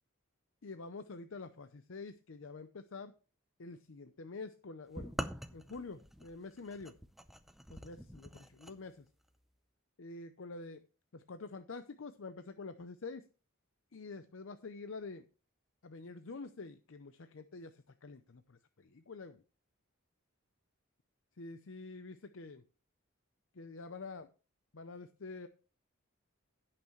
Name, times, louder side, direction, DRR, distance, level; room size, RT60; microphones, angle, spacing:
voice 1, 0.6-3.1 3.6-5.1 5.5-7.0 7.7-9.1 10.0-10.8 11.1-13.3 13.9-15.3 15.8-19.4 21.4-22.6 23.5-24.3 24.7-25.5, left 3 dB, 65° left, 10 dB, 0.6 m, -47 dB
sound 1, 5.0-8.8, equal, ahead, 0.5 m, -45 dB
17.0 x 6.0 x 3.1 m, 0.34 s
head